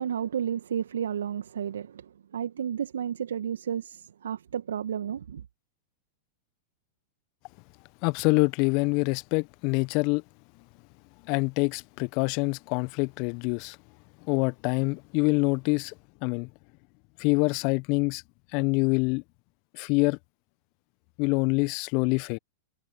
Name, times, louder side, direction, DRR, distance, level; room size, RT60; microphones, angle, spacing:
voice 1, 0.0-5.4, right 8 dB, 70° right, 2.1 m, -32 dB
voice 2, 8.0-10.2 11.3-13.8 14.3-15.9 16.2-16.5 17.2-18.2 18.5-19.2 19.7-20.2 21.2-22.4, left 30 dB, 45° left, 1.3 m, -25 dB
figure-of-eight pair, 95°, 0 cm